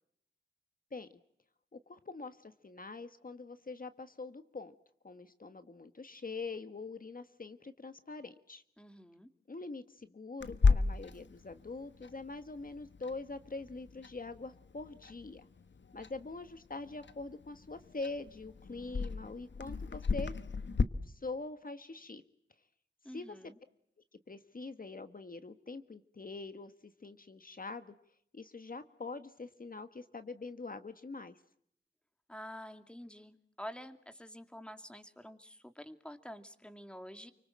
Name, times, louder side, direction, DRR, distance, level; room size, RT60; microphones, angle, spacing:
voice 1, 1.7-4.7 5.0-8.6 9.5-15.5 15.9-20.3 21.0-22.2 23.1-23.4 24.3-27.9 28.3-31.4, left 3 dB, 50° left, 10 dB, 1.5 m, -44 dB
voice 2, 8.8-9.3 23.0-23.6 32.3-37.3, equal, 5° left, 9 dB, 2.4 m, -48 dB
Clock, 10.4-20.8, left 4 dB, 75° left, 1.4 m, -35 dB
29.0 x 25.0 x 7.6 m, 0.69 s
wide cardioid pair, 75°, 19 cm